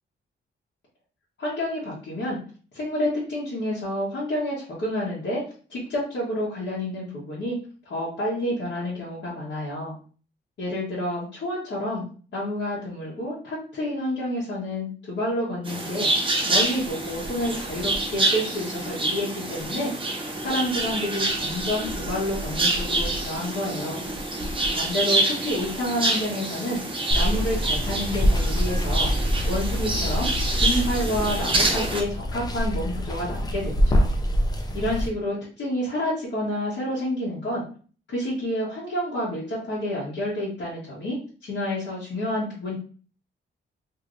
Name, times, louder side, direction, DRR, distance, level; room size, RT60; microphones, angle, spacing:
voice 1, 1.4-2.4 2.7-5.4 5.7-7.6 7.8-9.9 10.6-12.0 12.3-16.1 16.4-19.9 20.4-24.0 24.7-26.8 27.1-29.1 29.5-34.1 34.7-37.6 38.1-41.2 41.4-42.7, left 1 dB, 65° left, -8 dB, 1.3 m, -29 dB
sound 1, 15.7-32.0, right 2 dB, 25° right, 0.8 m, -27 dB
Water, 27.1-35.1, equal, 20° left, 0.5 m, -25 dB
3.1 x 3.0 x 2.5 m, 0.40 s
wide cardioid pair, 140°, 19 cm